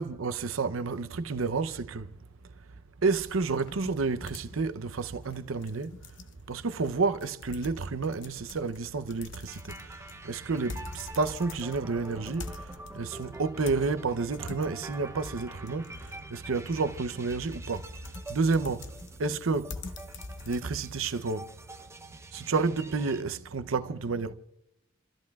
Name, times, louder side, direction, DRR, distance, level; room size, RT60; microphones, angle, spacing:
voice 1, 0.0-2.1 3.0-6.0 6.5-18.9 19.2-19.8 20.4-21.5 22.3-24.3, right 4 dB, 80° right, 0.7 m, -30 dB
sound 1, 3.1-21.1, left 3 dB, 65° left, 0.8 m, -46 dB
sound 2, 9.5-23.2, right 2 dB, 15° right, 0.7 m, -47 dB
29.5 x 13.5 x 2.4 m
head